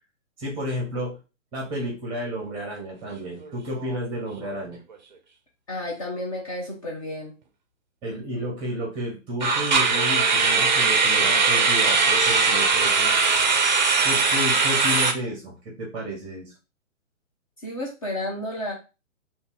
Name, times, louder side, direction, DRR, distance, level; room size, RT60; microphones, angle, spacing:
voice 1, 0.4-1.2 1.5-4.8 8.0-13.2 14.0-16.5, equal, 10° right, -2 dB, 0.9 m, -32 dB
sound 1, 3.2-3.5 3.8-4.0 4.5-4.6 9.4-15.1, right 4 dB, 35° right, 0.5 m, -20 dB
voice 2, 5.7-7.3 17.6-18.7, left 1 dB, 25° left, -2 dB, 0.6 m, -31 dB
2.6 x 2.6 x 3.7 m, 0.30 s
figure-of-eight pair, 125°, 40 cm